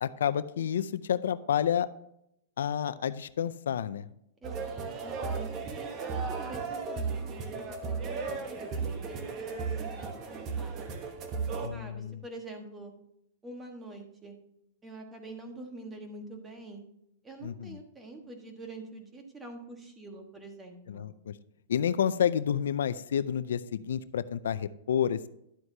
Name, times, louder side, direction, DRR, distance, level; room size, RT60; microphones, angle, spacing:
voice 1, 0.0-1.9 2.6-4.1 11.6-12.2 17.4-17.8 20.9-21.3 21.7-25.3, left 9 dB, 90° left, 15 dB, 0.4 m, -29 dB
voice 2, 4.4-10.8 11.7-12.9 13.4-14.4 14.8-16.8 17.2-21.1, right 2 dB, 10° right, 3 dB, 1.4 m, -46 dB
sound 1, 4.4-11.7, right 5 dB, 30° right, 1.1 m, -35 dB
11.0 x 7.8 x 2.8 m, 0.78 s
supercardioid pair, 150°, 0 cm